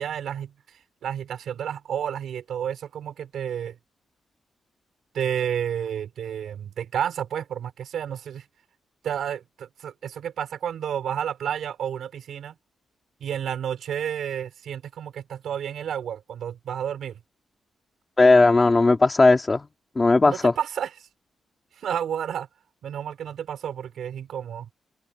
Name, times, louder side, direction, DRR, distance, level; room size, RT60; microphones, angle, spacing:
voice 1, 0.0-3.7 5.1-8.5 9.0-12.5 13.2-17.2 20.2-20.9 21.8-22.5 22.8-24.7, right 9 dB, 75° right, 4.4 m, -31 dB
voice 2, 18.2-19.7 20.0-20.5, left 3 dB, 20° left, 2.5 m, -17 dB
wide cardioid pair, 160°, 0 cm